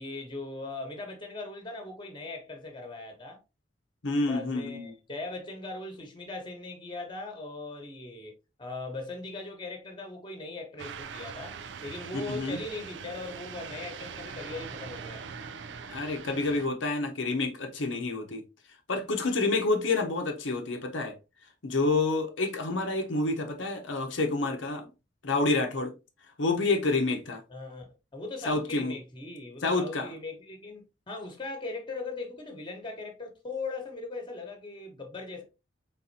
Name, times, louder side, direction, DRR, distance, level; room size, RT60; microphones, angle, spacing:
voice 1, 0.0-3.4 4.2-8.3 8.6-11.6 11.8-15.2 27.5-35.4, left 3 dB, 25° left, 1.2 m, -39 dB
voice 2, 4.0-4.9 12.1-12.6 15.9-18.5 18.9-21.2 21.6-24.9 25.2-25.9 26.4-27.4 28.4-29.0 29.6-30.1, left 3 dB, 90° left, 0.9 m, -28 dB
sound 1, 10.8-16.7, right 6 dB, 65° right, 0.4 m, -42 dB
4.1 x 3.8 x 2.7 m
head